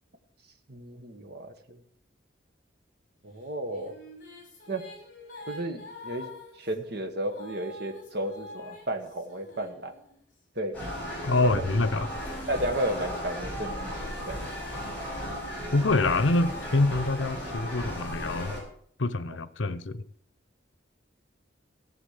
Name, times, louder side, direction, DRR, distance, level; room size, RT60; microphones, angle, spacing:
voice 1, 0.7-1.8 3.2-3.9 4.7-4.8 5.5-9.9 10.5-10.8 11.4-11.6 12.5-13.9 14.3-14.4, right 1 dB, 55° right, 1.4 m, -33 dB
sound 1, 3.4-10.4 11.0-14.8, left 2 dB, 45° left, 6.0 m, -48 dB
sound 2, 10.7-18.6, equal, 10° left, 6.2 m, -35 dB
voice 2, 11.2-12.1 15.7-18.6 19.0-20.0, left 2 dB, 80° left, 0.8 m, -26 dB
15.0 x 7.2 x 8.2 m
head